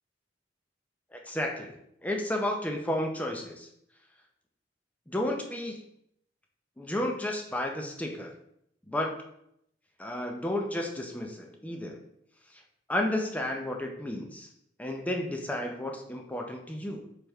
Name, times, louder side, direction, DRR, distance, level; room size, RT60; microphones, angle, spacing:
voice 1, 1.1-1.8 2.0-3.7 5.1-5.8 6.8-8.3 8.9-9.2 10.0-12.0 12.9-14.5 14.8-17.1, left 1 dB, 10° left, 2 dB, 0.4 m, -32 dB
4.4 x 3.3 x 2.3 m, 0.74 s
head